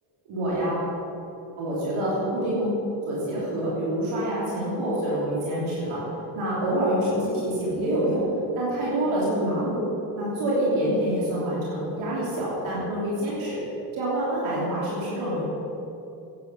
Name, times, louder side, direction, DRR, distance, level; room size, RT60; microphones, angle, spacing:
voice 1, 0.3-0.9 1.6-2.7 3.0-6.0 6.3-8.2 8.5-9.8 10.1-13.6 13.9-15.4, right 1 dB, 90° right, -6 dB, 3.1 m, -26 dB
10.5 x 9.7 x 6.7 m, 2.8 s
supercardioid pair, 50°, 47 cm